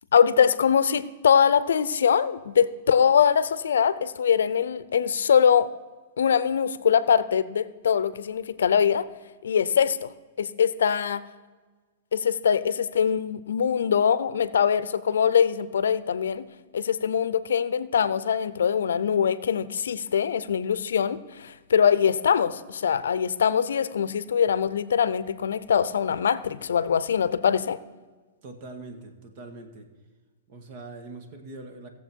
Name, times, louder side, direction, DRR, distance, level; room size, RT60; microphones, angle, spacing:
voice 1, 0.1-5.7 6.2-9.0 9.4-10.1 10.4-11.2 12.1-16.5 16.7-27.8, left 7 dB, 90° left, 16 dB, 0.6 m, -23 dB
voice 2, 28.4-29.9 30.5-31.9, right 2 dB, 45° right, 6 dB, 1.8 m, -42 dB
17.0 x 7.3 x 4.5 m, 1.4 s
hypercardioid pair, 140°, 0 cm